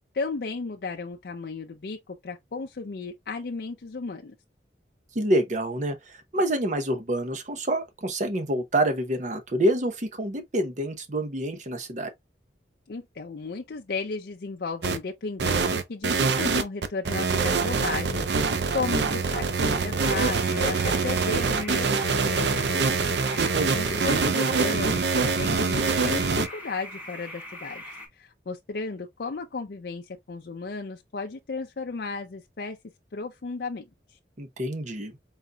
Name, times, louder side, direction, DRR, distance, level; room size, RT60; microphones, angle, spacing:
voice 1, 0.1-4.3 12.9-18.2 18.7-22.8 23.7-27.8 28.1-32.8 33.1-33.8, left 4 dB, 60° left, 0.5 m, -34 dB
voice 2, 5.1-12.1 23.5-24.1 34.4-35.1, right 1 dB, 45° right, 0.8 m, -27 dB
sound 1, 14.8-15.0 15.4-26.5, right 4 dB, 80° right, 0.6 m, -24 dB
sound 2, 20.1-28.1, left 1 dB, 10° right, 1.3 m, -41 dB
4.0 x 4.0 x 2.2 m
head